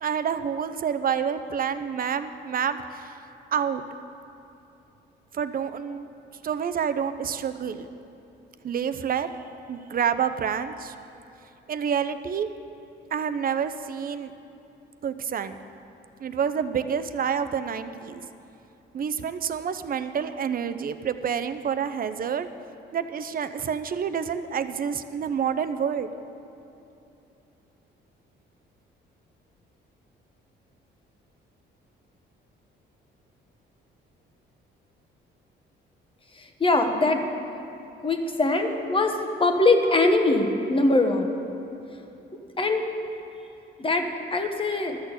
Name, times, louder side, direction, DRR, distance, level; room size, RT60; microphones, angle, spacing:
voice 1, 0.0-3.1 3.5-3.8 5.3-6.1 6.4-7.9 8.6-9.3 9.7-10.9 11.7-12.5 13.1-14.3 15.0-15.6 16.2-18.2 18.9-22.5 22.9-26.1, right 7 dB, 45° right, 11 dB, 0.6 m, -28 dB
voice 2, 36.6-37.3 38.0-41.3 42.6-42.8 43.8-45.0, left 2 dB, 25° left, 4 dB, 1.2 m, -22 dB
12.5 x 6.6 x 7.9 m, 2.9 s
cardioid pair, 90°, 20 cm